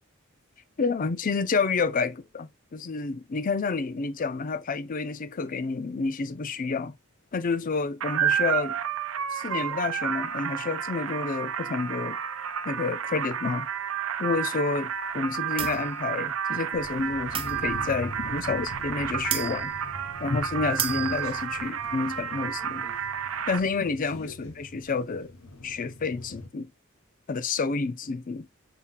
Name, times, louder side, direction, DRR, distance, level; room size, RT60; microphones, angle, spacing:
voice 1, 0.8-6.9 7.3-8.8 9.3-12.2 12.6-13.7 14.2-19.7 20.2-22.9 23.5-25.3 25.6-26.7 27.3-28.6, left 4 dB, 40° left, 0.5 m, -29 dB
sound 1, 8.0-23.6, right 8 dB, 90° right, 0.6 m, -31 dB
sound 2, 15.6-15.9 17.3-18.0 18.8-18.9 19.3-19.8 20.1-20.2 20.6-21.4, right 8 dB, 25° right, 0.6 m, -32 dB
sound 3, 16.7-26.5, left 2 dB, 85° left, 0.8 m, -42 dB
5.7 x 3.7 x 2.3 m
head